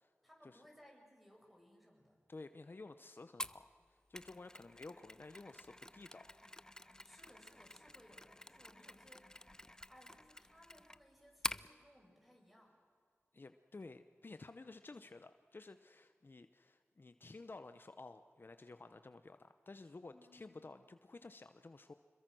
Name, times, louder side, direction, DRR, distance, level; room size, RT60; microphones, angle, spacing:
voice 1, 0.2-2.2 4.6-4.8 7.0-12.8 20.1-20.7, equal, ahead, 1 dB, 6.2 m, -64 dB
voice 2, 2.3-6.4 13.3-21.9, left 3 dB, 50° left, 10 dB, 0.8 m, -53 dB
Mechanisms, 3.4-11.7, left 1 dB, 15° left, 0.6 m, -48 dB
27.0 x 22.0 x 6.2 m, 2.1 s
wide cardioid pair, 55°, 4 cm